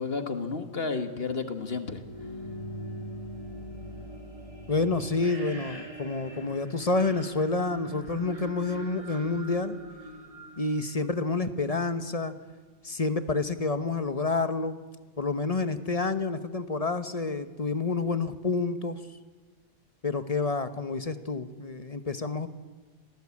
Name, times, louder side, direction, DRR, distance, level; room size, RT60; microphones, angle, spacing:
voice 1, 0.0-2.0, left 4 dB, 45° left, 8 dB, 1.6 m, -32 dB
sound 1, 1.9-11.7, right 1 dB, 25° right, 3.4 m, -42 dB
voice 2, 4.7-9.8 10.6-12.3 12.8-14.8 15.2-19.0 20.0-22.5, left 3 dB, 30° left, 11 dB, 1.0 m, -28 dB
26.5 x 18.5 x 8.5 m, 1.3 s
omnidirectional pair, 1.5 m